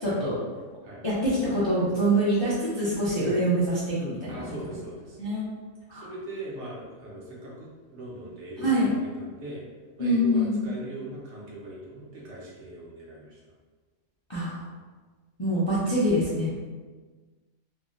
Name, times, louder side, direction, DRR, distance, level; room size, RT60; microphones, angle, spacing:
voice 1, 0.0-0.3 1.0-4.4 5.2-5.5 5.9-6.1 8.6-8.9 10.0-10.7 14.3-14.6 15.4-16.5, equal, 35° left, -10 dB, 0.4 m, -25 dB
voice 2, 4.3-5.3 5.9-9.6 10.0-13.4, right 1 dB, 65° right, -5 dB, 0.9 m, -40 dB
3.5 x 2.0 x 2.5 m, 1.4 s
omnidirectional pair, 1.4 m